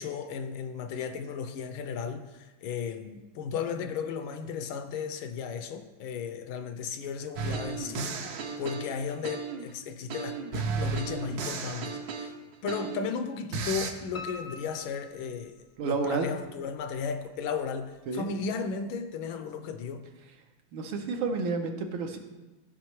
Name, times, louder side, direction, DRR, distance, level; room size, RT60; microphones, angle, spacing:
voice 1, 0.0-12.3 12.6-15.6 15.8-20.1, left 6 dB, 80° left, 1.4 m, -35 dB
sound 1, 7.4-9.7 10.1-13.1 13.5-13.9, right 5 dB, 65° right, 1.0 m, -34 dB
Piano, 14.1-16.1 16.5-17.3 17.7-17.8 18.2-18.3 18.6-18.7, left 3 dB, 60° left, 0.7 m, -45 dB
voice 2, 15.8-16.3 18.1-18.2 20.7-22.2, right 4 dB, 80° right, 1.6 m, -30 dB
14.0 x 5.1 x 3.1 m
omnidirectional pair, 2.3 m